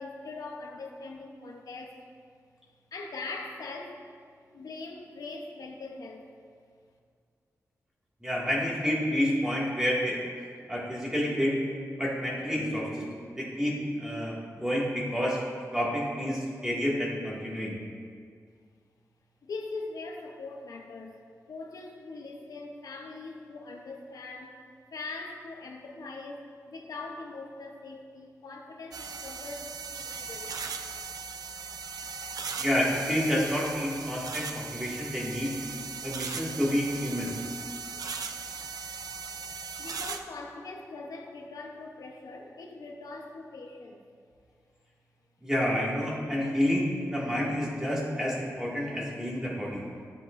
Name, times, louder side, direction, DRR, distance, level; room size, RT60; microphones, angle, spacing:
voice 1, 0.0-1.9 2.9-4.1 4.5-6.3 19.4-21.2 21.5-24.6 24.9-30.5 39.8-44.0 49.9-50.1, left 3 dB, 80° left, 1 dB, 0.9 m, -41 dB
voice 2, 8.2-10.2 10.7-11.6 12.0-13.1 13.3-15.4 15.7-17.8 32.6-35.5 36.0-37.3 45.4-49.8, equal, 10° right, -6 dB, 2.1 m, -29 dB
sound 1, 28.9-40.2, right 5 dB, 90° right, 0.5 m, -38 dB
13.5 x 7.7 x 2.6 m, 2.1 s
wide cardioid pair, 105°, 6 cm